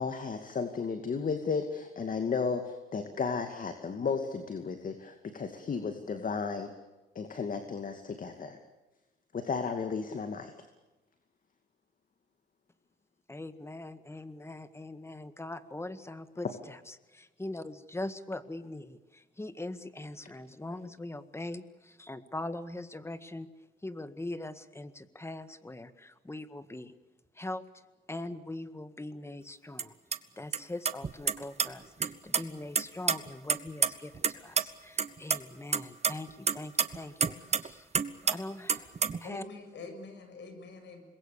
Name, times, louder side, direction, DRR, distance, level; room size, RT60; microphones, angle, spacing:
voice 1, 0.0-6.7 7.1-8.6 9.3-10.5, left 5 dB, 45° left, 7 dB, 2.3 m, -34 dB
voice 2, 13.3-23.5 23.8-26.9 27.4-27.6 28.1-29.9 30.4-37.9 38.2-38.9 39.2-39.4, left 2 dB, 15° left, 12 dB, 1.8 m, -41 dB
sound 1, 29.8-29.9 30.1-30.2 30.5-30.6 30.9-31.7 32.0-32.4 32.8-34.3 34.6-34.7 35.0-35.4 35.7-37.7 37.9-38.4 38.7-39.2, right 5 dB, 35° right, 1.2 m, -27 dB
voice 3, 39.2-41.0, left 4 dB, 65° left, 7 dB, 7.3 m, -45 dB
27.0 x 22.0 x 6.9 m, 1.1 s
cardioid pair, 90°, 20 cm